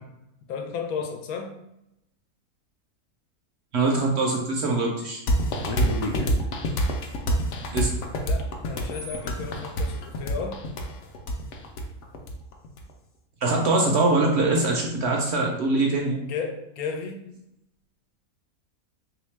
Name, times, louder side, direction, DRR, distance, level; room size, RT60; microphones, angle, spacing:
voice 1, 0.5-1.6 8.2-10.7 16.2-17.3, left 5 dB, 85° left, 5 dB, 1.1 m, -34 dB
voice 2, 3.7-5.2 7.7-7.9 13.4-16.2, right 2 dB, 65° right, 0 dB, 0.7 m, -23 dB
sound 1, 5.3-12.8, equal, 65° left, 0.8 m, -26 dB
3.4 x 2.8 x 3.2 m, 0.82 s
omnidirectional pair, 1.5 m